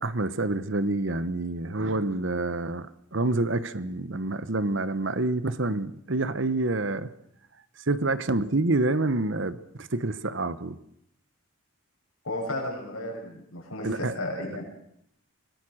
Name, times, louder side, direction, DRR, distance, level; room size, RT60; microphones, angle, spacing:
voice 1, 0.0-7.1 7.9-10.8 13.8-14.1, right 2 dB, 55° right, 14 dB, 1.1 m, -27 dB
voice 2, 12.2-14.6, left 1 dB, 80° left, 0 dB, 7.5 m, -33 dB
25.0 x 19.5 x 6.4 m, 0.73 s
head